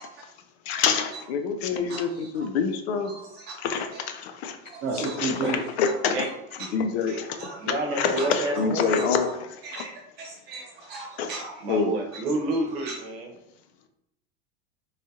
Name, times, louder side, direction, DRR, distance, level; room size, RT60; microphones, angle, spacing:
voice 1, 0.7-3.1 3.6-4.6 5.0-6.2 6.7-7.4 8.0-9.3 9.8-9.9 11.2-11.3 11.7-11.9, left 6 dB, 90° left, 7 dB, 0.6 m, -26 dB
voice 2, 3.1-3.5 4.8-5.5 7.1-7.6 8.2-8.3 9.0-9.1 9.6-9.9 10.2-11.5 12.9-13.0, right 3 dB, 30° right, -2 dB, 0.6 m, -34 dB
voice 3, 7.6-9.1 11.6-13.3, right 2 dB, 75° right, 2 dB, 0.8 m, -29 dB
3.2 x 2.3 x 2.6 m, 0.81 s
supercardioid pair, 155°, 31 cm